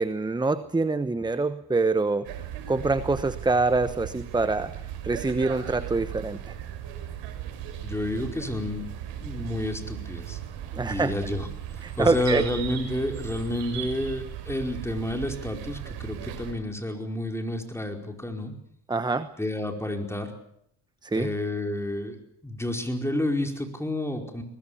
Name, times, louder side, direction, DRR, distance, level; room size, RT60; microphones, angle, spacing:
voice 1, 0.0-4.8 5.0-6.5 10.8-11.1 11.8-12.4 18.9-19.3 21.0-21.3, right 3 dB, 10° right, 12 dB, 1.0 m, -25 dB
sound 1, 2.2-16.5, right 10 dB, 85° right, 5.8 m, -37 dB
voice 2, 7.8-8.9 9.2-10.4 10.7-11.5 12.0-18.5 19.4-20.3 21.2-22.2 22.4-24.4, left 1 dB, 5° left, 4 dB, 4.7 m, -30 dB
22.5 x 20.0 x 8.7 m, 0.74 s
cardioid pair, 95°, 42 cm